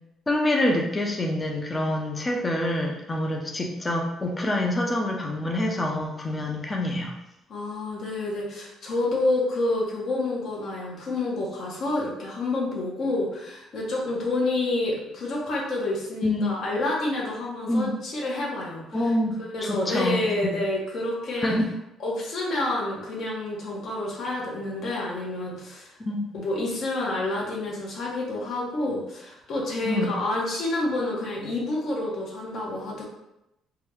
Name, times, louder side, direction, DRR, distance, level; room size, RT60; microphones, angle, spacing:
voice 1, 0.3-7.1 16.2-16.6 17.7-17.9 18.9-19.4 19.6-20.2 21.4-21.7 26.1-26.3 29.8-30.1, left 1 dB, 20° left, 1 dB, 0.5 m, -26 dB
voice 2, 7.5-19.0 19.5-21.5 22.0-25.9 26.3-33.0, left 2 dB, 60° left, -2 dB, 1.0 m, -28 dB
3.5 x 2.2 x 3.1 m, 0.86 s
cardioid pair, 120°, 0 cm